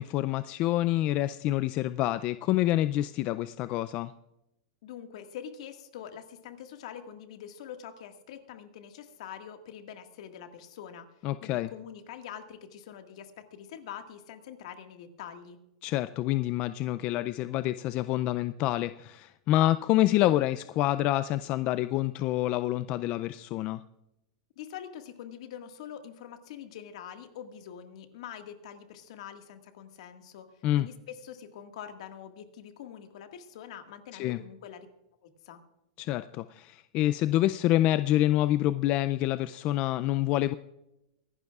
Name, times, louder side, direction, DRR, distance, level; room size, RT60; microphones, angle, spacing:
voice 1, 0.0-4.1 11.2-11.7 15.8-23.8 30.6-30.9 34.1-34.4 36.0-40.5, left 14 dB, 35° left, 13 dB, 0.3 m, -27 dB
voice 2, 4.8-11.1 11.4-15.6 24.5-30.5 30.7-34.9 35.2-35.6, left 9 dB, 65° left, 6 dB, 1.7 m, -44 dB
24.0 x 12.0 x 2.4 m, 0.88 s
supercardioid pair, 145°, 4 cm